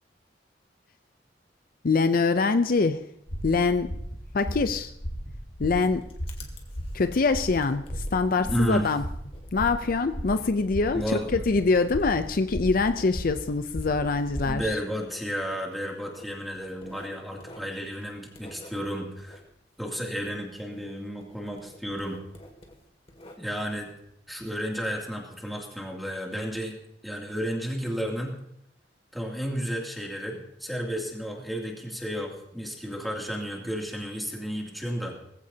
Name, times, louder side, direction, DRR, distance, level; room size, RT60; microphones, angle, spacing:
voice 1, 1.8-3.1 3.4-3.9 4.3-4.9 5.6-6.1 6.9-9.0 9.5-14.8, left 4 dB, 55° left, 10 dB, 0.5 m, -24 dB
sound 1, 3.3-14.6, equal, 80° left, 4.5 m, -36 dB
Writing, 5.6-20.9 21.2-23.8, left 1 dB, 35° left, 2.2 m, -51 dB
voice 2, 8.4-8.9 10.9-11.3 14.4-19.4 19.8-22.2 23.4-23.9 24.3-26.7 27.0-28.3 29.1-35.1, equal, ahead, -1 dB, 2.6 m, -32 dB
20.0 x 15.5 x 2.8 m, 0.76 s
head